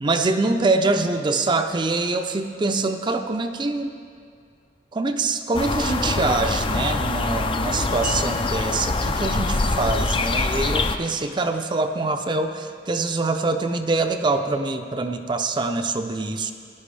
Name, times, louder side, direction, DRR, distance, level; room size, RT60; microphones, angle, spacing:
voice 1, 0.0-3.9 4.9-16.5, right 3 dB, 25° right, 6 dB, 0.5 m, -24 dB
sound 1, 5.5-11.0, left 3 dB, 30° left, 0.4 m, -24 dB
16.5 x 10.5 x 3.3 m, 2.2 s
head